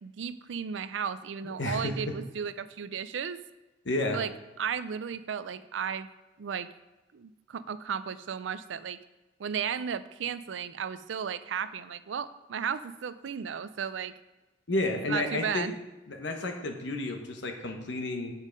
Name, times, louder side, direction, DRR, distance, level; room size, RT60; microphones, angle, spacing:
voice 1, 0.0-3.4 4.1-4.3 4.6-6.1 6.4-6.7 7.1-9.0 9.4-14.1 15.1-15.7, right 7 dB, 75° right, 14 dB, 0.4 m, -34 dB
voice 2, 1.4-1.9 3.8-4.2 14.7-15.7 16.1-18.3, left 2 dB, 70° left, 4 dB, 1.1 m, -31 dB
7.3 x 5.5 x 5.2 m, 1.1 s
head